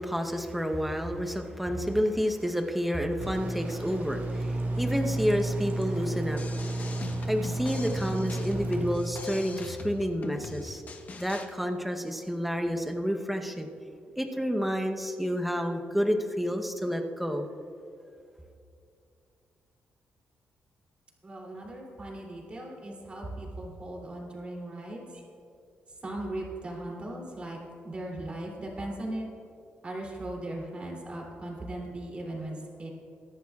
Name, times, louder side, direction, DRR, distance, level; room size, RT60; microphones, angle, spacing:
voice 1, 0.0-7.0 7.3-10.8 11.2-13.7 14.2-17.5, equal, 5° right, 4 dB, 0.9 m, -30 dB
sound 1, 3.2-9.0, right 2 dB, 60° right, 1.9 m, -32 dB
sound 2, 6.3-11.5, left 4 dB, 40° left, 1.0 m, -41 dB
voice 2, 21.2-25.2 26.0-27.6 27.8-29.3 29.8-32.9, right 1 dB, 30° right, -1 dB, 2.9 m, -38 dB
23.5 x 11.0 x 2.4 m, 2.5 s
cardioid pair, 125°, 4 cm